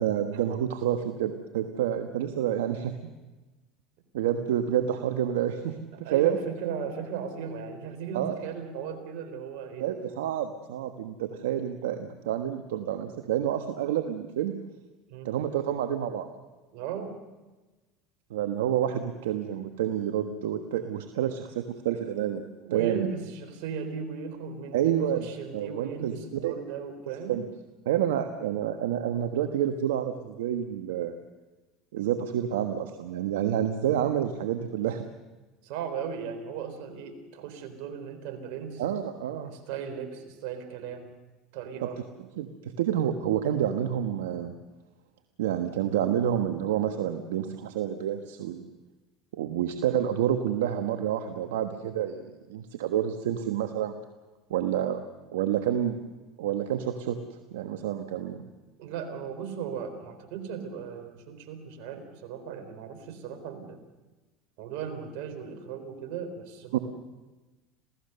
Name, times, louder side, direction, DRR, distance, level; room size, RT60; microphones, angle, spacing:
voice 1, 0.0-2.9 4.1-6.4 8.1-8.4 9.8-14.5 15.2-16.3 18.3-23.1 24.7-25.3 25.5-26.1 26.4-26.5 27.3-27.4 27.8-31.1 31.9-35.0 38.8-39.5 41.8-41.9 42.4-44.5 45.4-48.7 49.3-52.2 52.5-54.0 54.5-55.0 55.3-56.0 56.4-57.2 57.5-58.4 66.7-66.8, right 10 dB, 90° right, 7 dB, 1.3 m, -28 dB
voice 2, 5.9-9.9 15.1-15.3 16.7-17.2 22.6-27.3 35.6-38.8 39.4-41.1 41.5-42.0 58.8-63.8 64.6-66.8, right 7 dB, 75° right, 7 dB, 4.0 m, -37 dB
27.5 x 17.0 x 6.8 m, 1.2 s
supercardioid pair, 100°, 0 cm